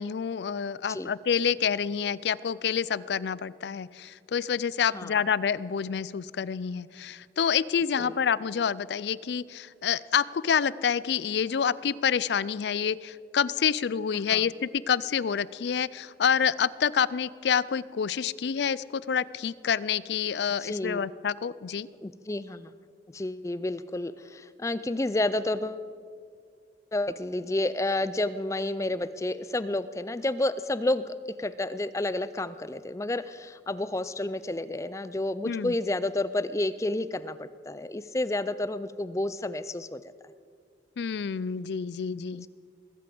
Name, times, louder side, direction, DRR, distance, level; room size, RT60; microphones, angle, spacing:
voice 1, 0.0-21.9 35.4-35.7 41.0-42.5, left 7 dB, 75° left, 20 dB, 0.4 m, -28 dB
voice 2, 20.6-21.0 22.0-22.7 23.1-25.8 26.9-40.0, left 2 dB, 15° left, 15 dB, 0.4 m, -30 dB
20.5 x 8.6 x 7.6 m, 2.1 s
head